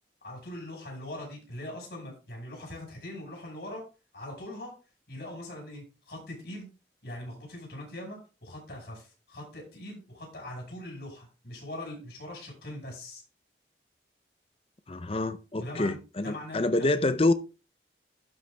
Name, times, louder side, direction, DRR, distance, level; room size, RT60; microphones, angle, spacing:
voice 1, 0.2-3.8 4.1-4.7 5.1-6.7 7.0-13.2 15.6-16.9, left 1 dB, 65° left, 5.4 m, -41 dB
voice 2, 14.9-17.3, left 2 dB, 30° left, 0.6 m, -27 dB
12.0 x 5.4 x 3.4 m
head